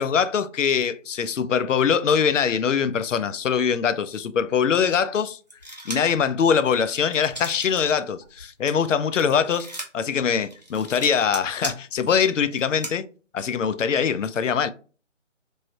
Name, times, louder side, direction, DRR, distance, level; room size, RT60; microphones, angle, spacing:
voice 1, 0.0-5.4 5.9-9.7 9.9-13.1 13.3-14.7, left 7 dB, 75° left, 0.5 m, -23 dB
sound 1, 5.5-6.2 6.6-7.9 8.2-12.9, right 1 dB, 35° right, 0.7 m, -37 dB
3.1 x 2.7 x 2.8 m
figure-of-eight pair, 175°, 38 cm